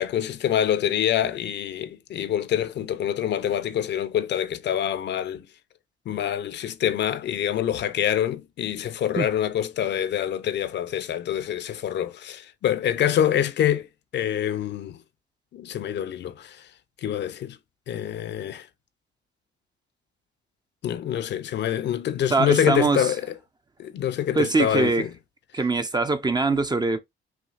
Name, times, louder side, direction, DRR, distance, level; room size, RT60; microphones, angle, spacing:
voice 1, 0.0-5.5 6.1-13.9 14.1-15.0 15.5-16.7 17.0-17.6 17.9-18.7 20.8-23.3 23.8-25.1, left 10 dB, 60° left, 0.6 m, -26 dB
voice 2, 22.3-23.1 24.4-25.0 25.5-27.0, right 3 dB, 20° right, 0.5 m, -22 dB
5.8 x 2.8 x 2.5 m
cardioid pair, 90°, 20 cm